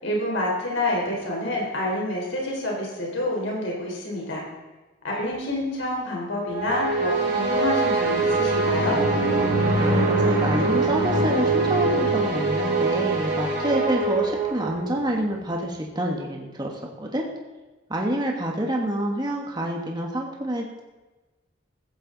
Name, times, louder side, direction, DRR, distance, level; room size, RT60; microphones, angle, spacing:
voice 1, 0.0-4.4 5.0-9.0, left 1 dB, 75° left, -2 dB, 4.2 m, -28 dB
sound 1, 6.5-14.9, right 3 dB, 55° right, 4.1 m, -23 dB
voice 2, 10.0-17.3 17.9-20.8, equal, 20° right, 0 dB, 1.4 m, -27 dB
15.0 x 14.5 x 4.0 m, 1.2 s
head